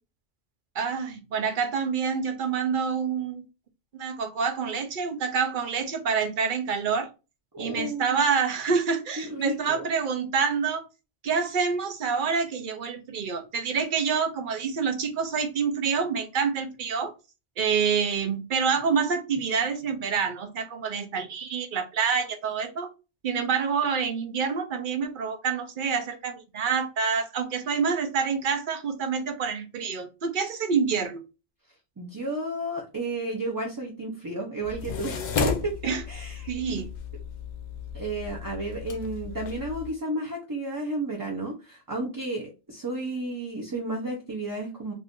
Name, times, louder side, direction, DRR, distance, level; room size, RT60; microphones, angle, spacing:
voice 1, 0.7-3.4 3.9-7.1 7.6-10.9 11.2-17.1 17.6-22.9 23.2-31.2 35.8-36.0 36.5-36.9, right 6 dB, 55° right, 0.7 m, -27 dB
voice 2, 7.5-8.2 9.2-9.9 32.0-36.8 37.9-44.9, right 1 dB, 25° right, 0.5 m, -32 dB
sound 1, 34.6-39.9, left 5 dB, 55° left, 0.5 m, -33 dB
2.6 x 2.5 x 3.5 m
omnidirectional pair, 1.1 m